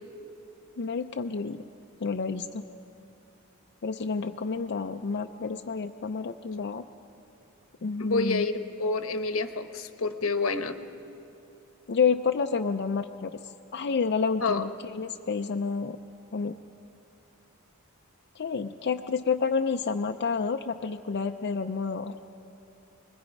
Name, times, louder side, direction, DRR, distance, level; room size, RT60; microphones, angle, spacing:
voice 1, 0.8-1.6 2.0-2.7 3.8-6.8 7.8-8.5 11.9-16.0 16.3-16.6 18.4-22.1, left 5 dB, 55° left, 5 dB, 0.5 m, -29 dB
voice 2, 8.0-8.5 8.8-10.8 14.4-14.6, left 3 dB, 85° left, 8 dB, 1.1 m, -28 dB
28.5 x 21.0 x 5.3 m, 2.8 s
head